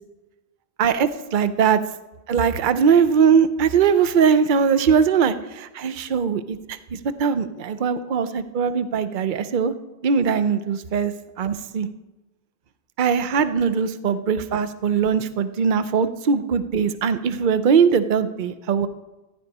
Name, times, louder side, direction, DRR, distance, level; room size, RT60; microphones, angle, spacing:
voice 1, 0.8-1.8 2.3-9.7 10.0-11.9 13.0-18.9, right 6 dB, 45° right, 12 dB, 0.7 m, -21 dB
14.5 x 5.4 x 9.8 m, 1.1 s
omnidirectional pair, 1.3 m